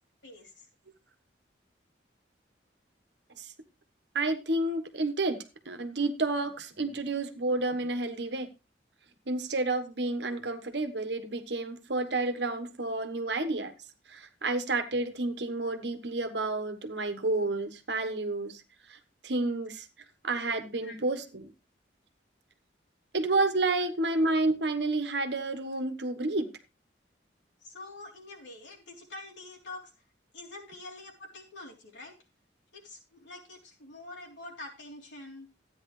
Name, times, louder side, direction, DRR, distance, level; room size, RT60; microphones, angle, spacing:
voice 1, 0.2-0.7 20.8-21.0 27.6-29.9 30.3-32.1 32.7-35.5, left 2 dB, 85° left, 3.4 m, -46 dB
voice 2, 4.1-8.5 9.3-13.7 14.1-18.6 18.9-19.0 19.2-19.9 20.2-21.5 23.1-26.5, right 2 dB, 70° right, 1.3 m, -30 dB
13.5 x 9.4 x 3.2 m
head